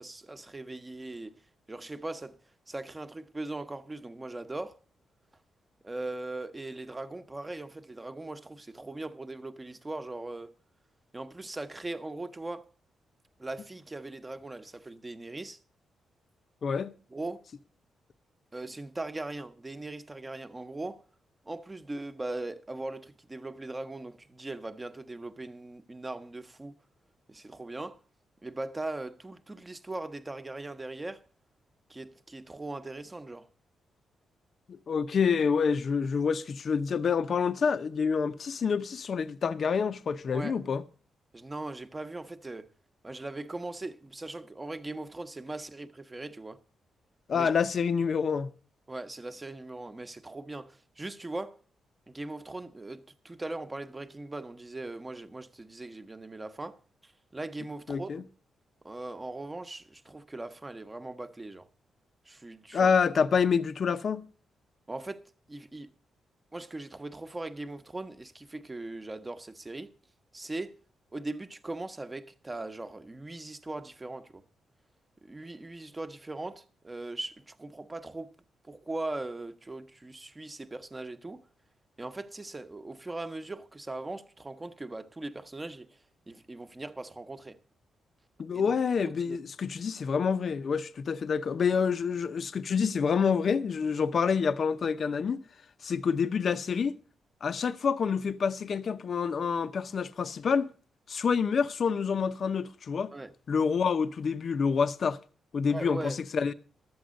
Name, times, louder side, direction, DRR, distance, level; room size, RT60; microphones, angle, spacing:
voice 1, 0.0-1.3 1.7-2.4 2.7-4.8 5.8-10.5 11.1-12.6 13.4-15.6 17.1-17.4 18.5-21.0 21.4-26.8 27.3-28.0 28.4-31.2 31.9-33.5 40.3-40.6 41.3-42.7 43.0-46.6 47.3-47.5 48.9-51.6 52.1-56.8 57.0-58.3 58.8-61.7 62.2-62.9 64.9-65.2 65.5-65.9 66.5-69.9 70.3-70.7 71.1-74.4 75.2-78.3 78.7-81.4 82.0-86.0 86.3-87.6 88.5-88.7 89.0-89.4 103.1-103.3 105.7-106.2, right 2 dB, 20° right, 1.0 m, -39 dB
voice 2, 16.6-16.9 34.7-40.8 47.3-48.5 57.9-58.2 62.7-64.3 88.4-95.4 95.8-96.9 97.4-100.7 101.1-103.1 103.5-105.2 105.5-106.5, left 6 dB, 55° left, 0.6 m, -27 dB
12.0 x 7.9 x 6.3 m
cardioid pair, 95°, 0 cm